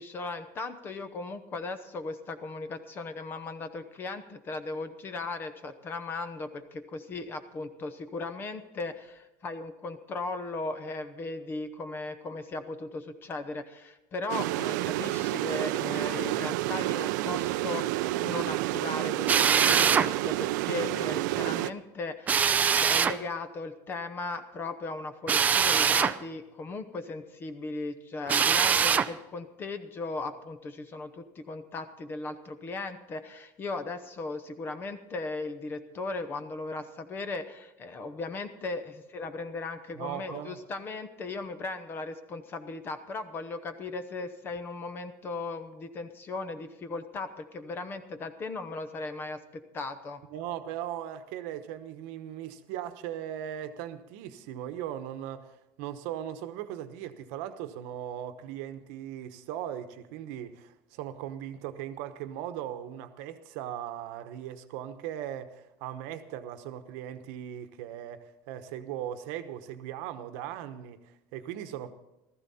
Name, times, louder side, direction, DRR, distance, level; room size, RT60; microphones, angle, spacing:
voice 1, 0.0-50.2, left 3 dB, 20° left, 0.8 m, -37 dB
sound 1, 14.3-21.7, right 16 dB, 80° right, 0.5 m, -29 dB
Drill, 19.3-20.1 22.3-23.2 25.3-26.2 28.3-29.1, right 7 dB, 15° right, 0.4 m, -23 dB
voice 2, 39.9-40.6 50.3-71.9, right 11 dB, 60° right, 1.1 m, -38 dB
15.5 x 14.5 x 4.2 m
cardioid pair, 175°, 10 cm